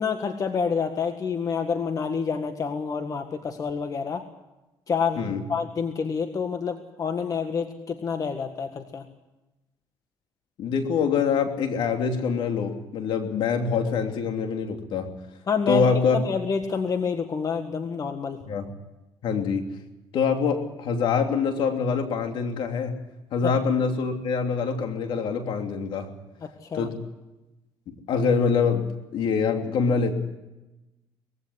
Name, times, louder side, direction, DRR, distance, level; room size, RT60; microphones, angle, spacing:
voice 1, 0.0-4.2 4.9-9.0 15.5-18.4 23.4-23.5 26.7-26.9, left 5 dB, 40° left, 6 dB, 1.8 m, -28 dB
voice 2, 10.6-15.1 15.7-16.2 18.5-18.7 19.2-19.7 20.1-23.0 23.3-26.1 26.7-26.9 27.9-30.1, left 5 dB, 70° left, 4 dB, 3.1 m, -25 dB
21.0 x 16.0 x 9.7 m, 1.0 s
cardioid pair, 95°, 9 cm